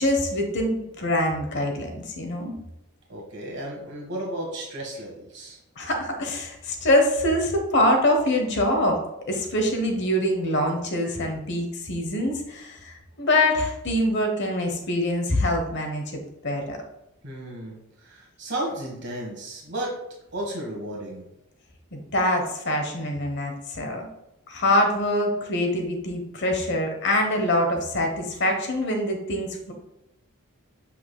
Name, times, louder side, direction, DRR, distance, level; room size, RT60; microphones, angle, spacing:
voice 1, 0.0-2.5 5.8-9.0 9.3-16.8 21.9-24.1 24.5-29.7, left 1 dB, 50° left, 3 dB, 1.1 m, -24 dB
voice 2, 3.1-5.6 17.2-19.9 20.3-21.2, right 1 dB, 50° right, -2 dB, 1.4 m, -33 dB
7.5 x 5.7 x 2.3 m, 0.86 s
head